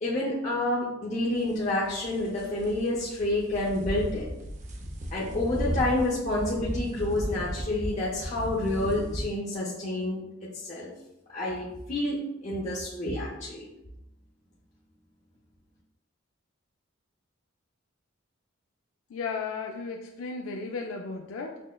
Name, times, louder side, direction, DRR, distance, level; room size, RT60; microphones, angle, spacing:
voice 1, 0.0-4.3 5.1-10.9 11.3-13.7, left 1 dB, 35° left, -7 dB, 0.6 m, -29 dB
sound 1, 1.4-9.2, equal, 35° right, 0.4 m, -35 dB
voice 2, 19.1-21.6, left 4 dB, 90° left, 2 dB, 0.3 m, -35 dB
6.1 x 2.1 x 2.2 m, 0.90 s
head